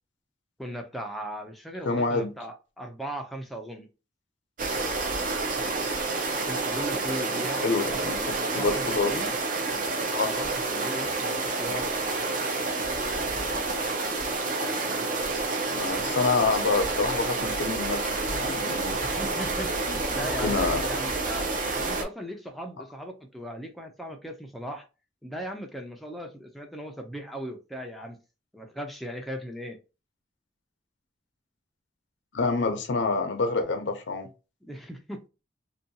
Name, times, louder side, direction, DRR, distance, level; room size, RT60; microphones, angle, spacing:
voice 1, 0.6-3.9 6.5-9.3 10.2-11.9 19.0-21.5 21.8-24.9 25.2-28.2 28.5-29.8 34.6-35.3, equal, ahead, 0.3 m, -38 dB
voice 2, 1.9-2.3 7.3-9.2 10.1-10.3 15.7-18.0 18.3-19.0 20.4-20.8 32.3-34.3, left 3 dB, 75° left, 0.6 m, -27 dB
sound 1, 4.6-22.0, right 3 dB, 45° right, 0.5 m, -29 dB
2.6 x 2.2 x 2.6 m
head